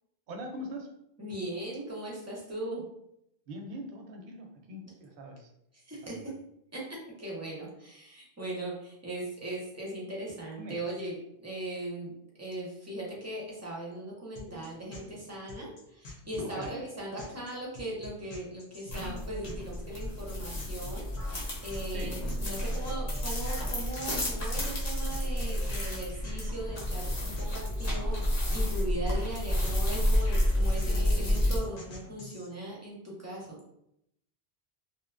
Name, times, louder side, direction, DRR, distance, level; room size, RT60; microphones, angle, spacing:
voice 1, 0.3-0.9 3.5-5.5 6.0-6.3 10.5-10.8 16.5-16.8 21.9-22.1, equal, 65° right, 2 dB, 0.7 m, -42 dB
voice 2, 1.2-2.8 5.7-6.2 6.7-33.6, right 1 dB, 20° right, -4 dB, 0.5 m, -39 dB
sound 1, 14.4-32.5, left 2 dB, 75° left, 0.9 m, -47 dB
sound 2, 18.9-31.6, left 1 dB, 40° left, 0.8 m, -30 dB
2.7 x 2.1 x 2.4 m, 0.78 s
omnidirectional pair, 1.1 m